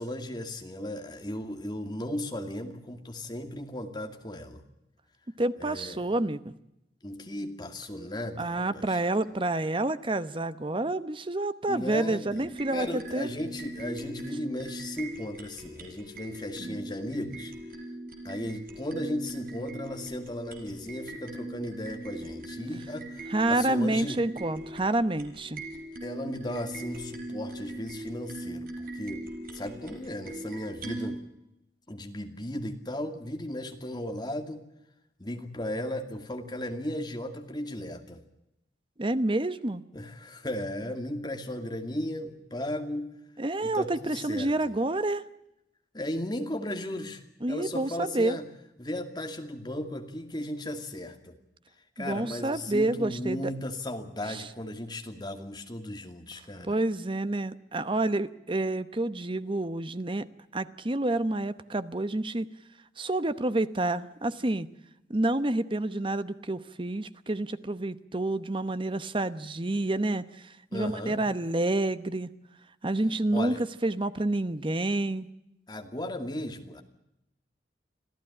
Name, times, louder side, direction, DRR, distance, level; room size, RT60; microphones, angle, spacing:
voice 1, 0.0-4.6 5.6-6.1 7.0-9.0 11.7-17.5 18.2-24.2 26.0-29.3 29.5-31.2 31.9-34.7 35.2-38.2 39.9-43.1 43.6-44.7 45.9-48.5 48.8-51.3 52.0-56.8 70.7-71.2 73.3-73.6 75.7-76.8, left 1 dB, 25° left, 5 dB, 2.5 m, -36 dB
voice 2, 5.4-6.5 8.4-13.3 16.6-16.8 23.3-25.6 39.0-39.8 43.4-45.2 47.4-48.4 52.0-53.5 54.3-54.4 56.6-60.3 60.5-62.5 63.0-64.7 65.1-72.3 72.8-75.3, right 2 dB, 30° right, 13 dB, 0.9 m, -28 dB
sound 1, 12.2-31.2, right 1 dB, 55° right, 4.8 m, -40 dB
26.0 x 15.5 x 10.0 m, 0.86 s
head